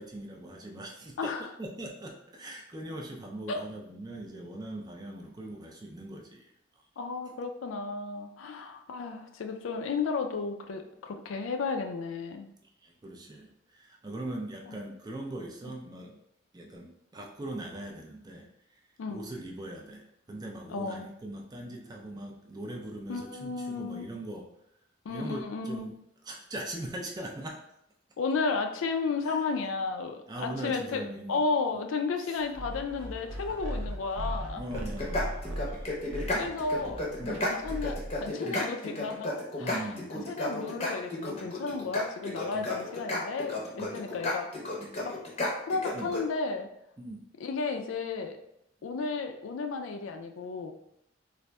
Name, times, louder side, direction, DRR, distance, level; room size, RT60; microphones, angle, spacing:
voice 1, 0.0-1.3 1.6-6.8 12.6-16.2 16.5-24.6 25.1-25.9 26.2-27.6 29.2-29.4 30.3-31.4 31.7-31.8 32.2-32.4 34.5-35.9 37.2-37.5 38.4-38.6 39.6-40.3 41.4-41.5 42.5-42.7 43.8-44.0 44.8-44.9 45.9-46.1 47.0-47.3, right 1 dB, 20° right, 1 dB, 0.4 m, -41 dB
voice 2, 1.2-1.5 3.5-3.6 7.0-12.5 19.0-19.2 20.7-21.0 23.1-24.1 25.0-25.9 28.2-31.0 31.3-34.6 36.4-39.3 39.6-39.8 40.3-44.5 45.0-45.2 45.7-46.7 47.4-48.4 48.8-50.7, left 4 dB, 85° left, 5 dB, 0.4 m, -33 dB
sound 1, 32.5-38.3, right 1 dB, 75° right, 0.5 m, -38 dB
sound 2, 34.7-46.2, left 2 dB, 30° left, 0.6 m, -33 dB
4.0 x 2.5 x 2.2 m, 0.80 s
head